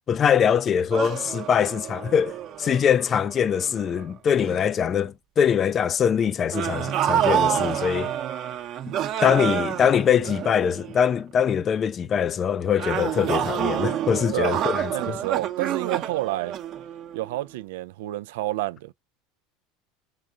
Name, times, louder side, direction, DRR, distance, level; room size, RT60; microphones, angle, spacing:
voice 1, 0.1-8.1 9.2-15.2, left 8 dB, 35° left, 0.4 m, -23 dB
sound 1, 0.9-4.0 4.4-4.7 6.5-11.1 12.8-17.4, right 10 dB, 50° right, 0.8 m, -28 dB
voice 2, 14.3-14.6 14.9-16.5 17.1-18.9, right 17 dB, 75° right, 0.3 m, -29 dB
3.7 x 3.6 x 2.5 m
hypercardioid pair, 85°, 0 cm